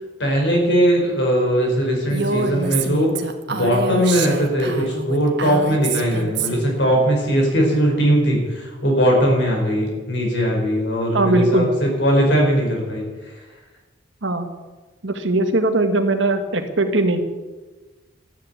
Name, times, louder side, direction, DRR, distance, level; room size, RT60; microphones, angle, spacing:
voice 1, 0.2-3.1 3.5-13.0, equal, 65° left, 0 dB, 5.3 m, -19 dB
Female speech woman speaking, 2.1-6.8, right 4 dB, 60° right, 1.5 m, -26 dB
voice 2, 11.1-11.7 14.2-14.5 15.0-17.2, right 2 dB, 75° right, 7 dB, 1.7 m, -20 dB
13.5 x 10.0 x 8.7 m, 1.3 s
head